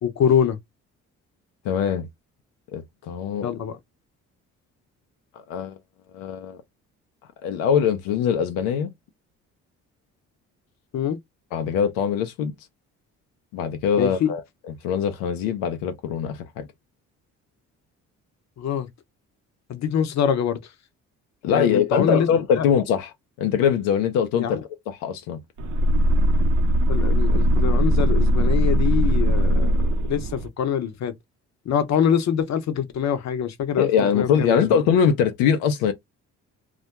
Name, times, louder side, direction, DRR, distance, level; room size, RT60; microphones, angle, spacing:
voice 1, 0.0-0.6 3.4-3.8 10.9-11.2 14.0-14.3 18.6-18.9 19.7-20.6 21.5-22.3 22.6-22.7 24.4-24.6 26.9-29.7 30.0-31.1 31.7-33.9 34.1-34.6, left 8 dB, 50° left, 0.7 m, -24 dB
voice 2, 1.6-2.1 2.7-3.5 5.5-5.8 6.1-6.6 7.4-8.9 11.5-12.5 13.5-14.4 14.8-16.7 21.4-23.1 23.4-24.6 24.9-25.4 33.8-35.9, left 7 dB, 90° left, 0.5 m, -22 dB
sound 1, 25.6-30.5, equal, 60° right, 0.6 m, -19 dB
2.2 x 2.1 x 2.8 m
supercardioid pair, 55°, 34 cm